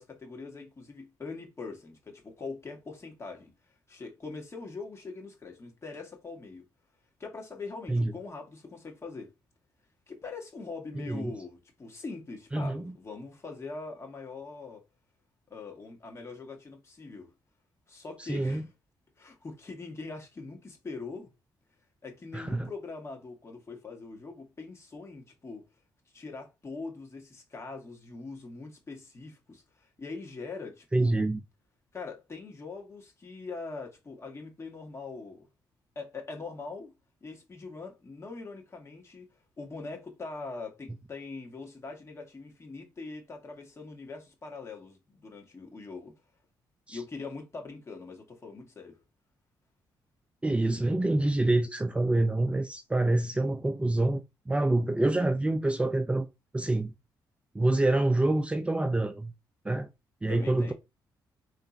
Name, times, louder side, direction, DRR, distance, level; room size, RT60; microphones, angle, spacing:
voice 1, 0.0-3.5 3.9-6.7 7.2-9.3 10.1-14.8 15.5-17.3 17.9-18.7 19.2-21.3 22.0-25.6 26.1-31.2 31.9-35.5 36.0-36.9 37.2-39.3 39.6-46.2 46.9-49.0 60.3-60.7, left 4 dB, 35° left, 1.7 m, -42 dB
voice 2, 11.0-11.3 12.5-12.9 18.2-18.6 22.3-22.7 30.9-31.4 46.9-47.0 50.4-56.3 56.5-56.9 57.5-59.3 59.6-59.9 60.2-60.7, right 2 dB, 15° right, 0.5 m, -26 dB
3.7 x 3.3 x 4.1 m
cardioid pair, 85°, 8 cm